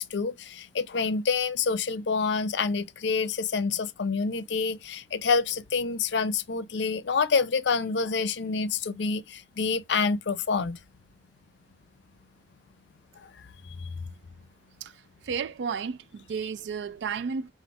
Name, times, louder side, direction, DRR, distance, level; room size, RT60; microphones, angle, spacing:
voice 1, 0.0-10.8 13.2-13.3 13.6-13.9, left 5 dB, 70° left, 0.5 m, -27 dB
voice 2, 14.8-17.5, right 6 dB, 70° right, 0.3 m, -33 dB
4.3 x 2.5 x 4.0 m
head